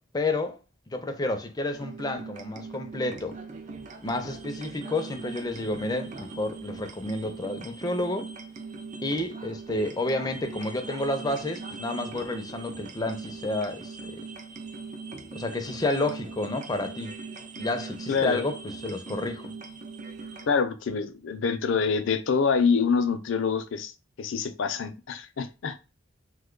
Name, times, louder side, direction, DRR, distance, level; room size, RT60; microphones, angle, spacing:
voice 1, 0.1-0.6 0.9-3.3 4.0-8.3 9.0-14.2 15.3-17.1 17.6-19.5, left 2 dB, 20° left, 0.5 m, -30 dB
sound 1, 1.7-20.5, right 4 dB, 40° right, 0.4 m, -40 dB
voice 2, 18.1-18.4 20.5-23.9 24.2-25.8, left 5 dB, 70° left, 0.5 m, -26 dB
3.0 x 2.2 x 3.7 m
head